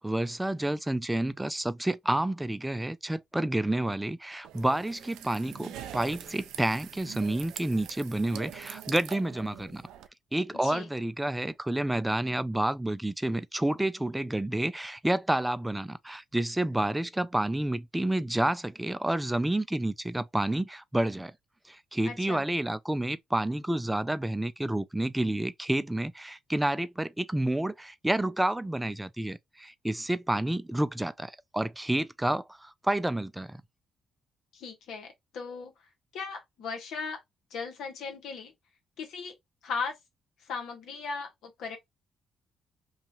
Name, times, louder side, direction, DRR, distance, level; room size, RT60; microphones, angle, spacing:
voice 1, 0.0-9.8 10.3-21.3 21.7-33.6, right 1 dB, 10° right, 0.3 m, -29 dB
sound 1, 4.4-10.1, right 11 dB, 85° right, 0.3 m, -44 dB
voice 2, 22.0-22.5 34.5-35.7 36.1-37.2 37.5-38.5 39.0-39.3 39.6-39.9 40.5-41.8, left 5 dB, 80° left, 1.0 m, -37 dB
2.7 x 2.4 x 2.9 m
supercardioid pair, 70°, 0 cm